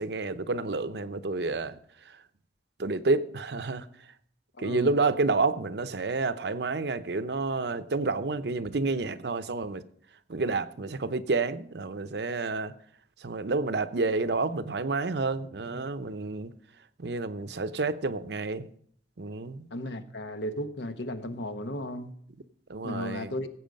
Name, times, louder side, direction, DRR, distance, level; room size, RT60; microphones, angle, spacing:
voice 1, 0.0-1.8 2.8-3.8 4.6-9.8 10.3-12.7 13.2-16.5 17.0-18.7 19.2-19.7 22.7-23.3, right 3 dB, 70° right, 0.7 m, -29 dB
voice 2, 4.6-4.9 19.7-22.1 22.8-23.5, left 1 dB, 85° left, 1.1 m, -35 dB
16.0 x 8.0 x 5.2 m
head